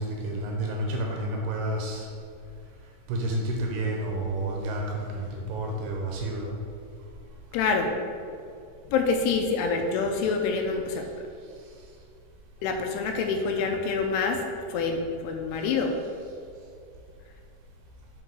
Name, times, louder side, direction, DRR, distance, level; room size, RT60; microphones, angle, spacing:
voice 1, 0.0-2.1 3.1-6.6, right 1 dB, 80° right, 0 dB, 2.4 m, -30 dB
voice 2, 7.5-7.9 8.9-11.1 12.6-14.4 14.7-16.0, left 4 dB, 90° left, 3 dB, 2.3 m, -26 dB
6.1 x 5.3 x 3.8 m, 2.4 s
omnidirectional pair, 5.2 m